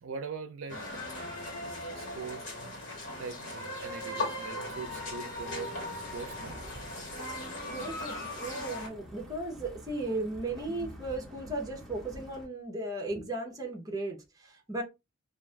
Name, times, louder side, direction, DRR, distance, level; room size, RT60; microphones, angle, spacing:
voice 1, 0.0-0.8 1.9-2.5 3.2-6.6 10.1-10.2, right 5 dB, 75° right, 0.4 m, -42 dB
sound 1, 0.7-8.9, left 2 dB, 65° left, 1.4 m, -38 dB
sound 2, 4.6-12.5, equal, ahead, 1.2 m, -50 dB
voice 2, 7.4-14.8, right 2 dB, 20° right, 0.8 m, -36 dB
2.5 x 2.5 x 3.2 m
head